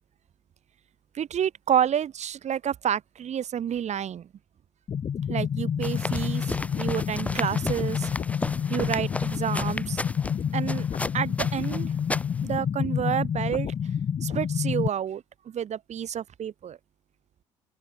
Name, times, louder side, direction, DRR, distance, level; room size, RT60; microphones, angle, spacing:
voice 1, 1.1-4.3 5.3-6.5 6.8-8.1 8.7-10.0 10.5-10.9 11.1-11.9 12.4-13.7 14.2-16.8, right 9 dB, 45° right, 5.2 m, -29 dB
sound 1, 4.9-14.9, left 8 dB, 35° left, 1.9 m, -29 dB
sound 2, 5.8-12.6, left 1 dB, 10° left, 3.4 m, -34 dB
open air
hypercardioid pair, 60°, 16 cm